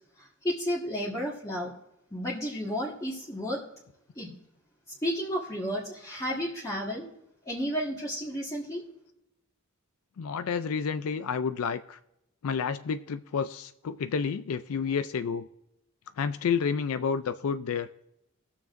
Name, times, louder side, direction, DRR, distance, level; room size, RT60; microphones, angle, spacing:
voice 1, 0.2-1.7 2.1-3.6 4.1-4.3 5.0-7.1 7.5-8.8, equal, 15° left, -6 dB, 1.6 m, -32 dB
voice 2, 10.2-12.0 12.4-15.5 16.2-17.9, left 6 dB, 75° left, 10 dB, 0.4 m, -30 dB
21.0 x 7.2 x 2.6 m, 0.84 s
head